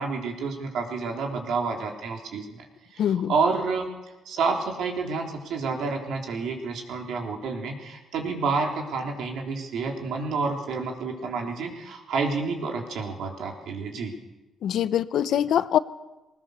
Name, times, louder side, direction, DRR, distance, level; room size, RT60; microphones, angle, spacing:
voice 1, 0.0-2.6 2.9-3.9 4.3-14.2, right 4 dB, 75° right, 2 dB, 3.9 m, -29 dB
voice 2, 3.0-3.3 14.6-15.8, left 10 dB, 70° left, 14 dB, 0.8 m, -23 dB
20.5 x 19.5 x 6.7 m, 1.1 s
cardioid pair, 90°, 0 cm